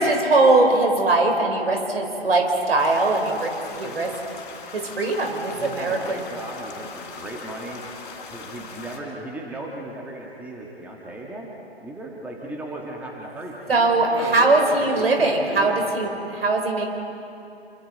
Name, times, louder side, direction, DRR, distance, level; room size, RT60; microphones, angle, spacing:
voice 1, 0.0-4.1 4.7-6.2 13.7-16.9, right 2 dB, 65° right, 3 dB, 4.0 m, -21 dB
sound 1, 2.8-9.0, left 5 dB, 45° left, 3.8 m, -40 dB
voice 2, 3.8-4.2 5.6-7.8 8.3-11.5 11.8-16.2, right 1 dB, 5° right, -1 dB, 1.6 m, -36 dB
28.0 x 24.5 x 4.1 m, 2.7 s
figure-of-eight pair, 130°, 32 cm